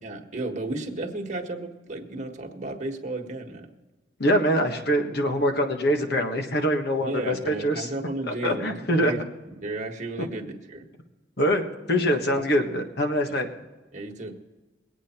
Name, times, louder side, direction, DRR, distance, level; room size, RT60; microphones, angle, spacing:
voice 1, 0.0-3.7 7.0-10.9 12.3-12.6 13.9-14.4, right 2 dB, 45° right, 2 dB, 1.5 m, -34 dB
voice 2, 4.2-7.9 8.3-9.1 11.4-13.5, equal, 65° left, 4 dB, 1.6 m, -24 dB
21.5 x 9.0 x 4.4 m, 1.2 s
head